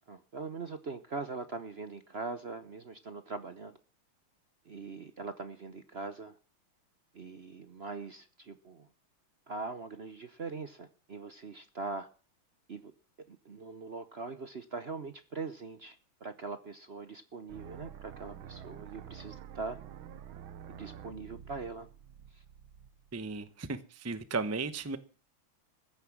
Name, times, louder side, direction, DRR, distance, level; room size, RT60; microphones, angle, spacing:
voice 1, 0.1-3.7 4.7-6.4 7.1-8.9 9.5-12.1 12.7-12.9 13.3-19.8 20.7-21.9 22.3-22.4, right 4 dB, 50° right, 0.7 m, -42 dB
sound 1, 17.5-23.5, right 9 dB, 80° right, 1.7 m, -48 dB
voice 2, 23.1-25.0, right 4 dB, 25° right, 0.3 m, -35 dB
15.5 x 9.9 x 7.2 m
omnidirectional pair, 2.3 m